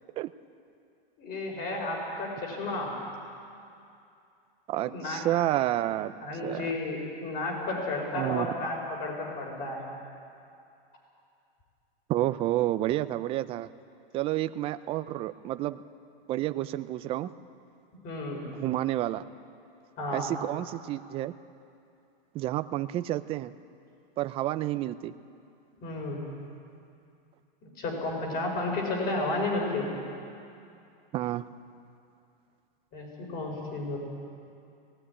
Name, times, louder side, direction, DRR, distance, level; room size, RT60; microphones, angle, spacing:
voice 1, 1.2-2.9 4.8-5.2 6.2-9.8 18.0-18.4 20.0-20.3 25.8-26.2 27.8-29.9 32.9-34.0, left 2 dB, 30° left, 0 dB, 5.8 m, -32 dB
voice 2, 4.7-6.1 6.4-6.7 8.1-8.5 12.1-13.7 14.1-15.8 16.3-17.3 18.6-19.3 20.1-21.3 22.3-23.5 24.2-25.1 31.1-31.4, right 14 dB, 20° right, 13 dB, 0.4 m, -30 dB
17.5 x 17.5 x 9.9 m, 2.5 s
hypercardioid pair, 145°, 29 cm